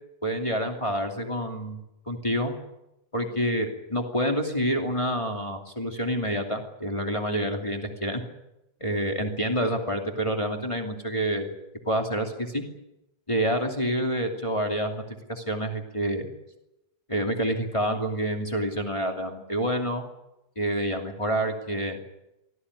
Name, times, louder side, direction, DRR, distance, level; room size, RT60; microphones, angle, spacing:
voice 1, 0.2-1.8 2.0-2.5 3.1-8.2 8.8-11.5 11.8-12.6 13.3-15.0 15.3-16.2 17.1-20.0 20.5-22.0, equal, 15° left, 2 dB, 1.1 m, -28 dB
25.0 x 17.0 x 9.8 m, 0.91 s
omnidirectional pair, 5.4 m